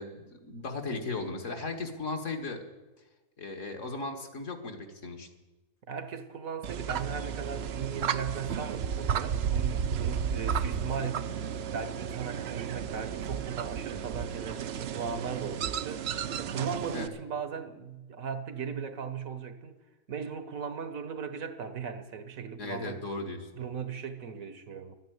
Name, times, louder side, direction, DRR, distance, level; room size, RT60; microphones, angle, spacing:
voice 1, 0.0-2.6 3.4-5.3 16.9-17.1 22.6-23.5, left 3 dB, 60° left, 2.0 m, -36 dB
voice 2, 5.9-11.4 11.7-19.8 20.1-23.0 23.5-25.0, right 6 dB, 75° right, 1.5 m, -38 dB
sound 1, 6.6-17.1, right 8 dB, 60° right, 0.8 m, -33 dB
12.5 x 9.6 x 9.4 m
omnidirectional pair, 1.5 m